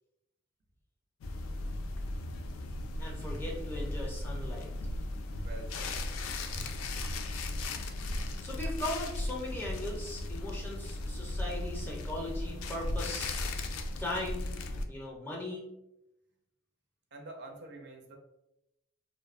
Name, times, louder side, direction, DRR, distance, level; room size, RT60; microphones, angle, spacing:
sound 1, 1.2-14.9, left 2 dB, 80° left, 0.3 m, -36 dB
voice 1, 3.0-4.7 8.4-13.4 14.0-14.5 14.8-15.7, left 1 dB, 10° left, -2 dB, 0.5 m, -38 dB
voice 2, 5.3-6.0 17.1-18.2, right 2 dB, 55° right, 2 dB, 0.4 m, -47 dB
2.6 x 2.0 x 2.4 m, 0.89 s
head